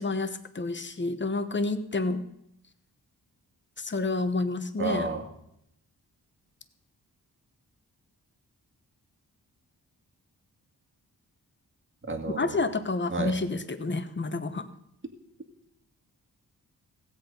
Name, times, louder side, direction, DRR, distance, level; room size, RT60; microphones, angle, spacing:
voice 1, 0.0-2.2 3.8-5.1 12.4-14.7, left 3 dB, 30° left, 11 dB, 1.1 m, -29 dB
voice 2, 4.8-5.3 12.1-12.6 13.1-13.3, right 3 dB, 35° right, 3 dB, 2.1 m, -31 dB
16.5 x 8.1 x 5.3 m, 0.78 s
cardioid pair, 80°, 36 cm